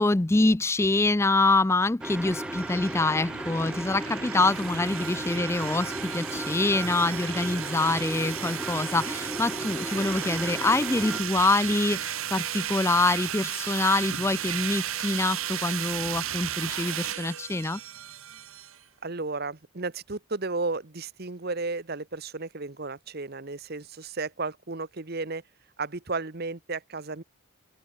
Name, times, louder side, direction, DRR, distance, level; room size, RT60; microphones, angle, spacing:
voice 1, 0.0-17.8, left 2 dB, 10° left, 0.4 m, -25 dB
sound 1, 2.0-11.2, equal, 5° right, 0.8 m, -36 dB
sound 2, 2.0-18.8, right 10 dB, 75° right, 2.0 m, -34 dB
voice 2, 19.0-25.4 25.8-27.2, right 3 dB, 45° right, 1.1 m, -33 dB
open air
head